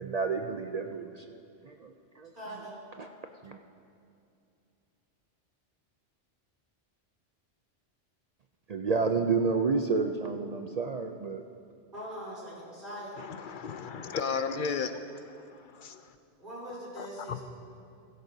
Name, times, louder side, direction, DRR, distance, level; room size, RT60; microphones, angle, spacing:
voice 1, 0.0-1.4 1.6-2.3 3.0-3.1 3.4-3.6 8.7-11.4, right 4 dB, 60° right, 4 dB, 0.4 m, -30 dB
voice 2, 2.3-2.8 11.9-13.2 16.4-17.4, equal, 45° right, -8 dB, 3.7 m, -41 dB
voice 3, 13.2-16.1 16.9-17.4, left 5 dB, 60° left, 9 dB, 0.6 m, -35 dB
16.0 x 13.0 x 2.7 m, 2.5 s
omnidirectional pair, 1.2 m